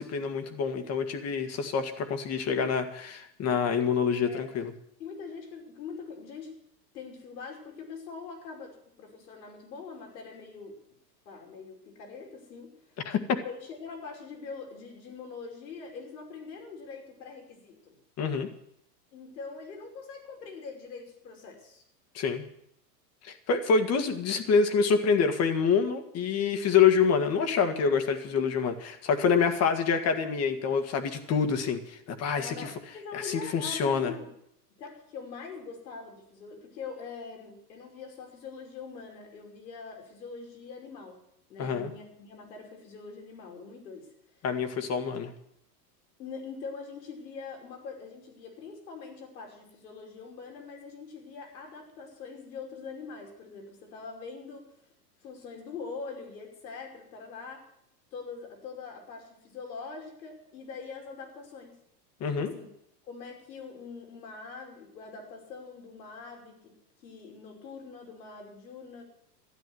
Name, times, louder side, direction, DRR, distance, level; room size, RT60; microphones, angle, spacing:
voice 1, 0.0-4.7 13.1-13.4 18.2-18.5 22.1-22.4 23.2-32.7 33.1-34.1 41.6-41.9 44.4-45.3 62.2-62.5, left 6 dB, 30° left, 8 dB, 1.8 m, -26 dB
voice 2, 5.0-6.6 6.9-10.8 11.3-13.0 13.4-18.0 19.1-21.8 32.3-34.3 34.8-41.2 41.5-44.1 46.2-54.7 55.2-57.6 58.1-61.7 62.3-62.7 63.0-66.8 67.0-69.0, left 4 dB, 85° left, 1 dB, 5.4 m, -43 dB
13.0 x 10.5 x 7.9 m, 0.75 s
supercardioid pair, 130°, 50 cm